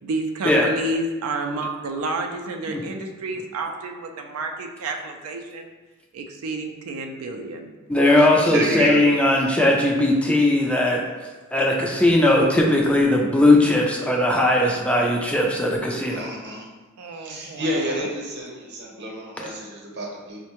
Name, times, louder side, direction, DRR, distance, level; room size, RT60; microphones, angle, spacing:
voice 1, 0.0-5.7 6.1-7.7 17.0-18.1, right 2 dB, 90° right, 4 dB, 0.4 m, -30 dB
voice 2, 7.9-11.0 11.5-16.3 19.4-19.5, left 1 dB, 5° left, -2 dB, 0.3 m, -19 dB
voice 3, 8.5-9.0 16.1-16.7 17.2-20.4, equal, 55° right, -2 dB, 0.8 m, -29 dB
4.4 x 2.1 x 2.9 m, 1.3 s
head